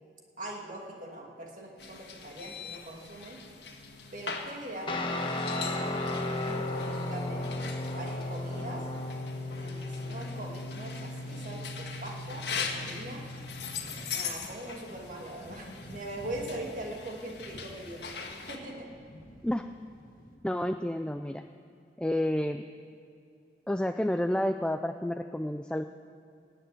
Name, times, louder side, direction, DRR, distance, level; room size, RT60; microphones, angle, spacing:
voice 1, 0.4-3.4 4.1-8.9 9.5-13.2 13.9-18.9, right 1 dB, 45° right, 0 dB, 2.4 m, -42 dB
sound 1, 1.8-18.6, left 5 dB, 75° left, 1.6 m, -42 dB
Guitar, 4.9-13.8, left 2 dB, 30° left, 1.2 m, -35 dB
sound 2, 12.1-20.4, equal, 50° left, 1.5 m, -50 dB
voice 2, 20.4-21.4 22.0-22.6 23.7-25.8, left 1 dB, 5° left, 7 dB, 0.3 m, -30 dB
17.5 x 6.8 x 9.1 m, 2.6 s
head